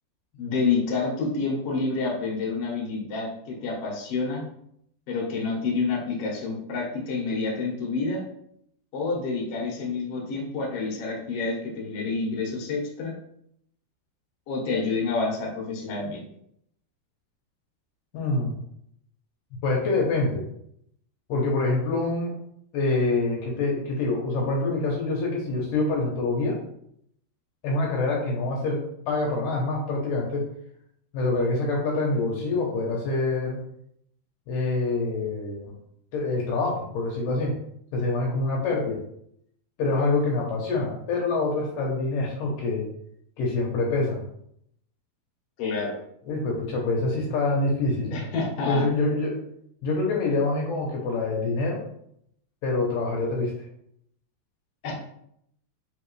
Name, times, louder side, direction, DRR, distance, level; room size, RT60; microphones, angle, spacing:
voice 1, 0.4-4.4 5.1-8.2 8.9-13.1 14.5-16.2 45.6-46.0 48.1-48.8 54.8-54.9, left 4 dB, 55° left, -4 dB, 1.8 m, -28 dB
voice 2, 18.1-18.6 19.6-20.5 21.3-22.3 22.7-26.6 27.6-30.5 31.1-33.6 34.5-35.7 36.1-37.5 37.9-39.0 39.8-42.9 43.4-44.2 46.3-48.2 48.7-49.4 49.8-51.8 52.6-53.5, left 3 dB, 75° left, -2 dB, 2.3 m, -26 dB
5.4 x 3.1 x 3.1 m, 0.72 s
omnidirectional pair, 4.1 m